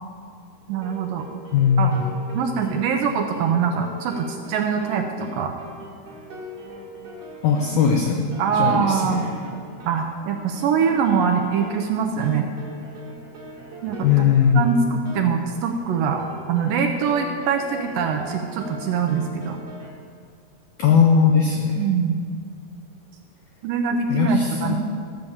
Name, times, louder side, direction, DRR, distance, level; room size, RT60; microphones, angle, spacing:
sound 1, 0.7-19.9, right 1 dB, 45° right, 1.7 m, -41 dB
voice 1, 0.7-1.3 1.8-2.0 2.3-5.5 8.4-9.2 9.9-12.5 13.8-14.0 14.6-16.2 16.5-19.6 21.8-22.2 23.6-24.8, right 6 dB, 75° right, 4 dB, 2.1 m, -23 dB
voice 2, 1.5-2.1 7.4-8.3 8.5-9.3 14.0-14.7 20.8-21.8 24.1-24.7, left 7 dB, 80° left, 1 dB, 1.7 m, -19 dB
13.5 x 6.7 x 7.1 m, 2.1 s
omnidirectional pair, 4.5 m